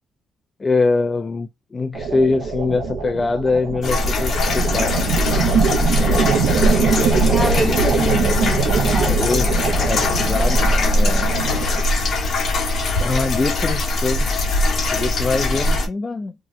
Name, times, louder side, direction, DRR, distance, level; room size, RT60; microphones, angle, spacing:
voice 1, 0.6-4.9 6.0-6.3 8.8-11.3 13.0-14.3 14.9-16.3, left 3 dB, 30° left, 0.4 m, -23 dB
sound 1, 1.9-11.8, right 5 dB, 85° right, 0.7 m, -22 dB
sound 2, 3.8-15.9, left 2 dB, 60° left, 0.9 m, -21 dB
voice 2, 7.3-9.6 10.3-10.4, left 1 dB, 5° left, 0.7 m, -26 dB
2.7 x 2.0 x 3.6 m
cardioid pair, 90°, 0 cm